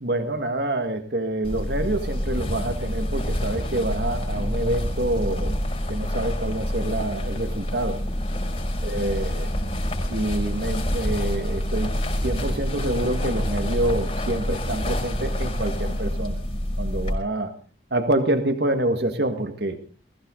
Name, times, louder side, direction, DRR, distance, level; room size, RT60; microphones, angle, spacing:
voice 1, 0.0-5.5 5.9-8.0 8.8-9.5 10.1-16.4 16.8-17.5 17.9-19.8, right 1 dB, 60° right, 7 dB, 1.8 m, -27 dB
sound 1, 1.4-17.1, equal, 30° left, 5.8 m, -27 dB
21.5 x 16.0 x 3.9 m, 0.39 s
head